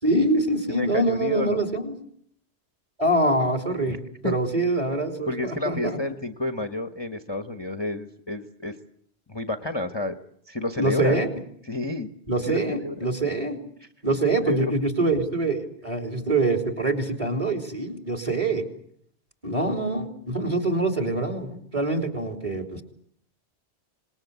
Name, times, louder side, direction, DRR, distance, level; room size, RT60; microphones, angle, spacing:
voice 1, 0.0-1.9 3.0-4.0 4.2-6.0 10.8-11.3 12.3-13.6 14.0-18.6 19.4-22.8, right 2 dB, 30° right, 5 dB, 3.5 m, -25 dB
voice 2, 0.7-1.6 3.9-4.3 5.3-8.8 9.3-10.1 10.5-11.2 11.7-12.1 12.5-12.9 14.5-14.7, left 2 dB, 25° left, 7 dB, 1.2 m, -30 dB
26.0 x 20.5 x 8.2 m, 0.65 s
omnidirectional pair, 1.1 m